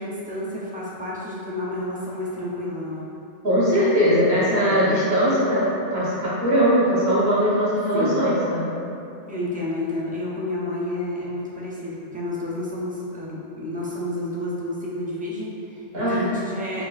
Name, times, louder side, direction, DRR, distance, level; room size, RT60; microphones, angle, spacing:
voice 1, 0.0-3.1 4.6-5.0 7.9-8.2 9.3-16.9, left 1 dB, 15° right, -7 dB, 0.4 m, -30 dB
voice 2, 3.4-5.6 5.9-8.7 15.9-16.2, equal, 70° right, -10 dB, 1.5 m, -20 dB
4.4 x 3.0 x 2.4 m, 2.8 s
omnidirectional pair, 1.1 m